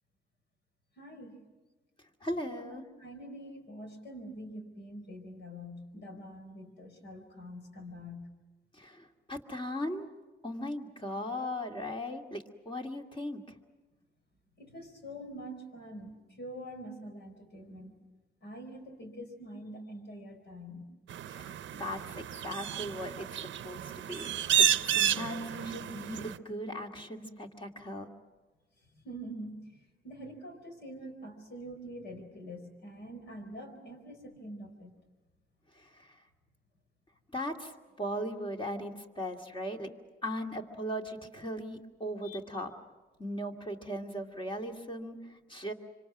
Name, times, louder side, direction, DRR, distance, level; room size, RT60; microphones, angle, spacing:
voice 1, 1.0-1.4 2.4-8.3 14.6-18.0 18.4-20.9 24.2-24.6 25.1-25.3 28.9-34.9 42.2-42.4, equal, 65° left, 5 dB, 4.6 m, -45 dB
voice 2, 2.2-2.8 8.7-10.1 10.4-13.5 21.3-24.3 24.8-28.1 35.8-36.2 37.3-37.7 38.0-39.9 40.2-42.7 43.2-45.7, equal, 25° left, 2 dB, 2.3 m, -38 dB
sound 1, 21.1-26.4, right 10 dB, 75° right, 0.7 m, -31 dB
26.0 x 25.5 x 6.1 m, 1.2 s
cardioid pair, 100°, 19 cm